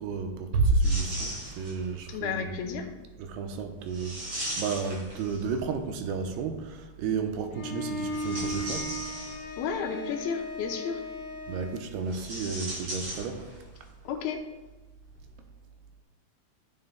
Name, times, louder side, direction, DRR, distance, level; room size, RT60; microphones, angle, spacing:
voice 1, 0.0-2.5 3.2-8.9 11.5-13.5, right 5 dB, 80° right, 5 dB, 2.7 m, -33 dB
Bass drum, 0.5-1.9, right 2 dB, 60° right, 1.5 m, -25 dB
sound 1, 0.8-1.9 3.9-5.7 8.0-9.7 12.0-13.8 14.0-14.1 15.1-15.2, right 1 dB, 40° right, 3.7 m, -38 dB
voice 2, 2.1-2.9 9.6-11.0 14.0-14.4, left 6 dB, 75° left, 3 dB, 2.5 m, -32 dB
Bowed string instrument, 7.5-11.9, equal, 60° left, 1.5 m, -37 dB
15.5 x 7.7 x 2.3 m, 1.2 s
omnidirectional pair, 4.8 m